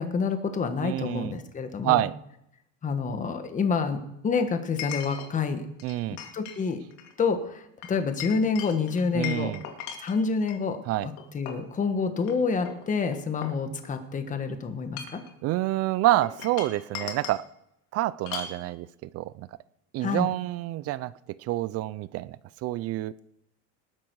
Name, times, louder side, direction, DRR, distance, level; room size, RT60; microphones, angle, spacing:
voice 1, 0.0-2.0 2.8-5.7 6.3-6.8 7.2-9.5 10.0-15.2 20.0-20.3, left 5 dB, 20° left, 7 dB, 1.4 m, -28 dB
voice 2, 0.8-1.4 1.8-2.1 5.8-6.2 9.1-9.6 10.9-11.1 15.4-17.4 17.9-19.5 19.9-21.1 21.4-23.1, right 16 dB, 40° right, 18 dB, 0.5 m, -27 dB
Chink clink, 1.3-1.4 4.8-5.3 5.8-6.6 6.9-7.1 7.8-10.6 11.2-11.7 12.2-12.3 12.7-14.1 14.8-15.3 16.2-17.4 18.3-18.6, left 8 dB, 65° left, 2.6 m, -38 dB
19.5 x 9.7 x 4.7 m, 0.79 s
cardioid pair, 140°, 36 cm